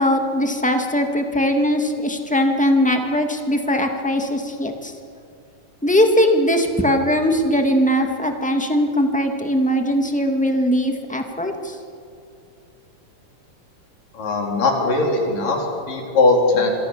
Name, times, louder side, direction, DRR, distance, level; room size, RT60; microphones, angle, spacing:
voice 1, 0.0-4.9 5.8-11.7, equal, 5° left, 4 dB, 1.4 m, -20 dB
voice 2, 14.1-16.7, left 3 dB, 85° left, 1 dB, 5.7 m, -19 dB
26.5 x 25.0 x 7.5 m, 2.4 s
omnidirectional pair, 3.7 m